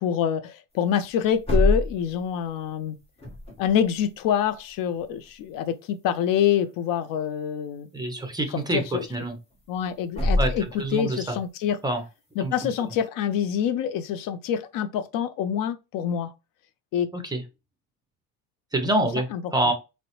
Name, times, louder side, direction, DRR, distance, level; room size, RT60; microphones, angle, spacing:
voice 1, 0.0-3.0 3.6-7.9 8.7-9.1 9.7-10.6 10.9-11.8 12.4-16.3 16.9-17.1 19.3-19.4, left 9 dB, 60° left, 0.5 m, -26 dB
sound 1, 1.0-2.2 3.2-3.7 4.9-5.0 5.3-5.4 6.3-6.7 7.0-7.1 9.1-9.2 9.5-9.8 10.1-10.9, left 1 dB, 15° left, 1.1 m, -25 dB
voice 2, 7.9-9.4 10.4-10.5 10.8-11.3 11.8-12.0 12.4-12.5 17.1-17.4 18.7-19.7, right 2 dB, 10° right, 0.6 m, -26 dB
3.7 x 2.1 x 2.8 m
cardioid pair, 120°, 38 cm